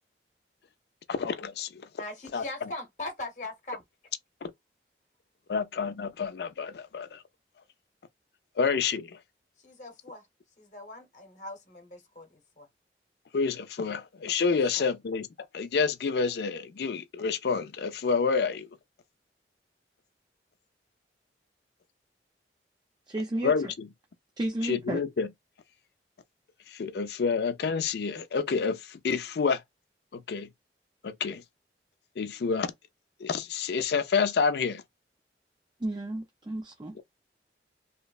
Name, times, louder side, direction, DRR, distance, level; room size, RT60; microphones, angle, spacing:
voice 1, 1.1-1.7 2.3-2.4 5.5-7.2 8.6-9.1 13.3-15.3 15.5-18.7 23.4-23.9 24.6-25.3 26.7-29.6 30.1-30.5 31.0-31.4 32.2-32.7 33.2-34.8, left 5 dB, 65° left, 0.4 m, -28 dB
voice 2, 2.0-3.8 9.6-10.2 10.6-12.7 14.5-14.9, left 2 dB, 45° left, 0.8 m, -41 dB
voice 3, 23.1-23.7 24.4-25.0 35.8-36.9, right 1 dB, 25° right, 0.4 m, -32 dB
2.9 x 2.0 x 2.3 m
head